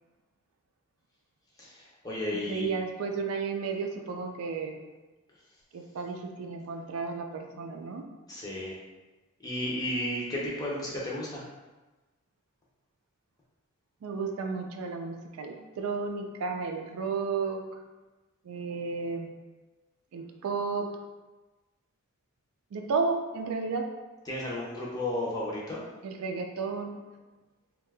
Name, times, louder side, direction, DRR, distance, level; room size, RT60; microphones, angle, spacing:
voice 1, 1.6-2.7 8.3-8.8 9.4-11.4 24.3-25.8, left 1 dB, 15° left, -5 dB, 0.5 m, -33 dB
voice 2, 2.3-4.8 5.7-8.0 14.0-17.8 18.4-19.3 20.1-20.9 22.7-23.9 26.0-27.0, right 4 dB, 80° right, 4 dB, 0.4 m, -33 dB
2.7 x 2.3 x 3.3 m, 1.2 s
head